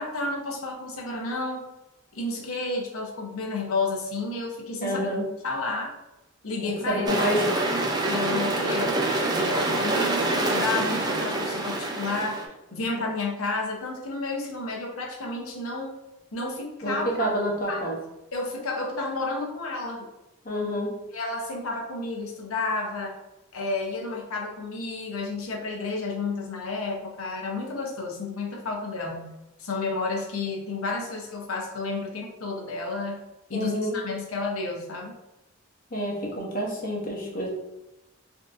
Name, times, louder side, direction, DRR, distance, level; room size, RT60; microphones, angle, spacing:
voice 1, 0.0-1.6 2.1-5.1 5.4-5.9 6.4-7.3 8.0-12.4 12.7-15.9 16.3-17.3 17.7-17.9 18.3-20.0 21.1-23.2 23.5-29.3 29.6-33.2 33.5-35.1, left 3 dB, 80° left, 0 dB, 0.7 m, -31 dB
voice 2, 4.8-5.2 6.6-7.6 16.8-18.0 20.4-20.9 33.5-34.0 35.9-37.5, equal, 40° left, -2 dB, 0.7 m, -28 dB
sound 1, 7.1-12.5, right 2 dB, 20° right, 0.3 m, -26 dB
3.5 x 2.6 x 2.5 m, 0.94 s
head